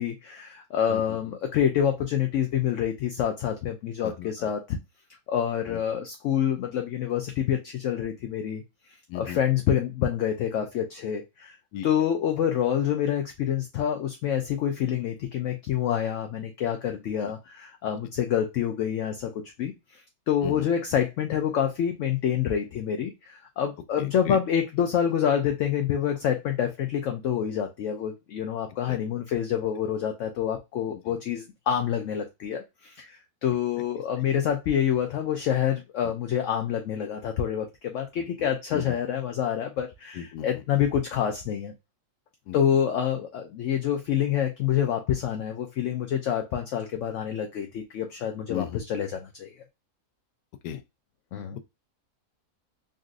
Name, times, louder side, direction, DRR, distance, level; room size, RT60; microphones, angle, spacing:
voice 1, 0.0-4.8 5.3-8.6 9.1-11.6 11.8-19.3 19.6-41.7 42.5-49.6 51.3-51.6, left 9 dB, 70° left, 0.8 m, -27 dB
voice 2, 0.9-1.2 4.0-4.5 5.7-5.8 9.1-9.4 11.7-11.9 20.4-20.7 24.0-24.4 28.9-29.0 30.9-31.1 36.0-36.1 38.2-39.0 40.1-40.6 42.5-42.6 48.5-48.8 50.6-50.8, left 10 dB, 90° left, 1.1 m, -37 dB
3.9 x 2.5 x 2.4 m
omnidirectional pair, 1.6 m